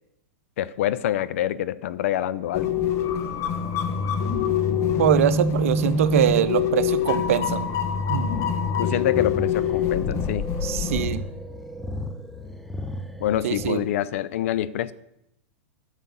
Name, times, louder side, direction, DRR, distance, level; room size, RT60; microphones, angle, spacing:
voice 1, 0.6-2.7 8.8-10.5 13.2-14.9, left 12 dB, 65° left, 16 dB, 0.6 m, -26 dB
sound 1, 2.5-11.1, left 6 dB, 40° left, 1.2 m, -25 dB
sound 2, 3.3-13.7, left 1 dB, ahead, 0.7 m, -36 dB
voice 2, 5.0-7.7 8.1-8.3 10.6-11.2 13.4-13.8, right 10 dB, 70° right, 14 dB, 0.7 m, -23 dB
8.9 x 6.5 x 7.0 m, 0.84 s
hypercardioid pair, 110°, 8 cm